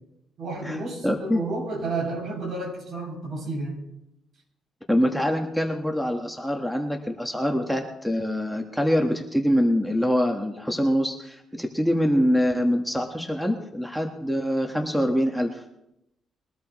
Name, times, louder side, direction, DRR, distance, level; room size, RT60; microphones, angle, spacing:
voice 1, 0.4-3.8, right 2 dB, 60° right, -1 dB, 7.0 m, -31 dB
voice 2, 1.0-1.4 4.9-15.6, equal, ahead, 2 dB, 1.4 m, -24 dB
22.0 x 12.5 x 3.1 m, 0.84 s
cardioid pair, 90°, 0 cm